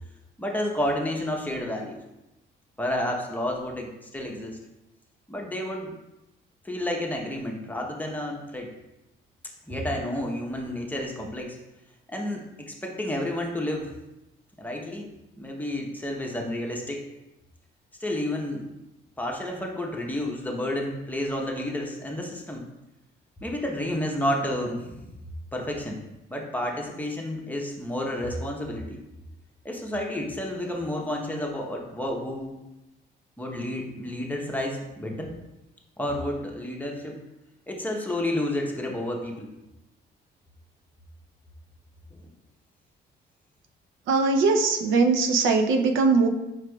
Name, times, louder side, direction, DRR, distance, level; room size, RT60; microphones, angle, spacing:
voice 1, 0.4-2.0 2.8-4.6 5.3-5.9 6.6-8.7 9.7-11.6 12.1-13.9 14.6-15.1 15.4-17.0 18.0-18.6 19.2-22.6 23.4-25.1 25.5-26.0 26.3-29.0 29.6-32.6 33.4-35.3 36.0-37.2 37.7-39.5 42.1-42.3, left 1 dB, 10° left, 0 dB, 0.8 m, -30 dB
voice 2, 44.1-46.3, right 4 dB, 80° right, 4 dB, 0.5 m, -21 dB
4.7 x 4.6 x 2.3 m, 0.94 s
cardioid pair, 90°, 20 cm